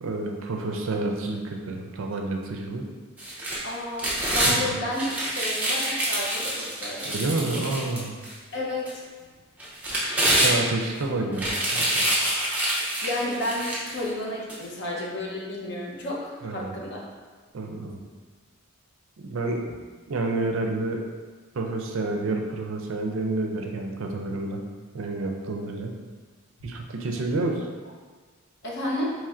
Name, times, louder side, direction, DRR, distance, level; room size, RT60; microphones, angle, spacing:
voice 1, 0.0-2.9 4.4-4.7 7.1-8.1 10.4-12.0 16.4-16.7 17.5-18.0 19.2-19.6 20.1-21.0 21.5-24.6 24.9-25.9 26.6-27.6, right 2 dB, 65° right, 2 dB, 0.4 m, -29 dB
sound 1, 3.2-4.6 4.9-8.3 8.9-9.0 9.6-10.9 11.3-14.0 14.5-14.6, right 1 dB, 5° right, 0.5 m, -26 dB
voice 2, 3.6-5.1 5.4-7.2 8.5-9.0 13.0-17.0 27.1-27.2 28.6-29.1, left 1 dB, 50° left, -3 dB, 0.7 m, -31 dB
3.1 x 2.4 x 4.2 m, 1.5 s
head